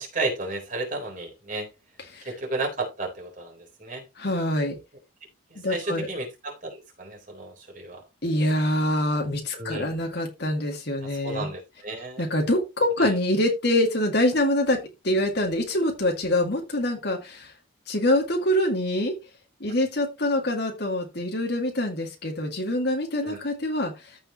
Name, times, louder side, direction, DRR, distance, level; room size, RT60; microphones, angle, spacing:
voice 1, 0.0-1.7 2.3-4.0 5.5-8.0 9.5-9.9 11.0-12.3 13.0-13.1 23.2-23.4, right 2 dB, 40° right, 3.9 m, -33 dB
voice 2, 4.2-4.8 5.6-6.1 8.2-11.5 12.2-17.5 17.9-19.1 19.6-24.2, left 1 dB, 55° left, 2.1 m, -25 dB
14.5 x 5.5 x 3.0 m
head